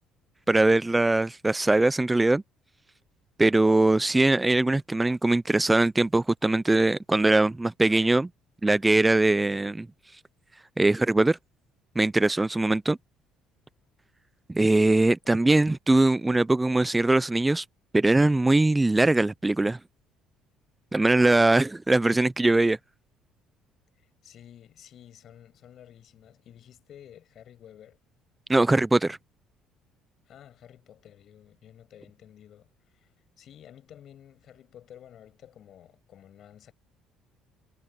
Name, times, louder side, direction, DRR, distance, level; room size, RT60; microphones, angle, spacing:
voice 1, 0.5-2.4 3.4-8.3 8.6-9.9 10.8-11.4 12.0-13.0 14.5-17.6 17.9-19.8 20.9-22.8 28.5-29.2, right 2 dB, 15° right, 0.6 m, -21 dB
voice 2, 24.2-28.0 30.3-33.1 33.4-36.7, left 10 dB, 60° left, 7.3 m, -51 dB
supercardioid pair, 70°, 0 cm